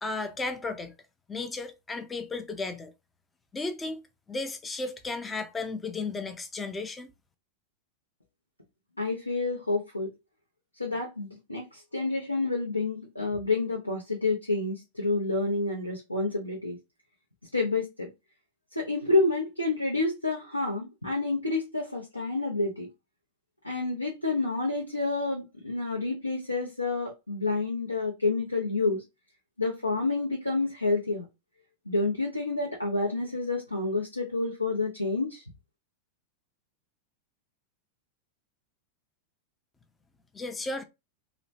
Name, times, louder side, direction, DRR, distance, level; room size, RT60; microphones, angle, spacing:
voice 1, 0.0-0.9 1.3-2.9 3.5-4.0 4.3-7.1 40.3-40.8, left 3 dB, 15° left, 0.4 m, -34 dB
voice 2, 9.0-10.1 10.8-16.8 17.5-18.1 18.8-22.9 23.6-29.0 29.6-31.2 31.9-35.4, left 3 dB, 85° left, 0.5 m, -29 dB
2.9 x 2.1 x 2.7 m
figure-of-eight pair, 90°, 0 cm